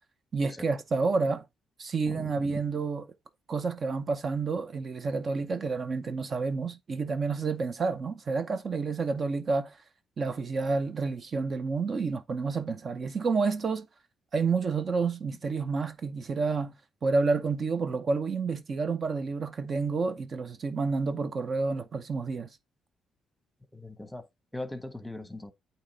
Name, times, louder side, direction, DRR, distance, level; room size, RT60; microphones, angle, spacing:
voice 1, 0.3-1.5 1.8-3.0 3.5-9.8 10.2-13.9 14.3-16.7 17.0-22.5, right 4 dB, 45° right, 0.7 m, -29 dB
voice 2, 2.1-2.6 23.7-24.2 24.5-25.5, left 2 dB, 5° left, 1.0 m, -39 dB
8.5 x 2.9 x 4.0 m
cardioid pair, 90°, 0 cm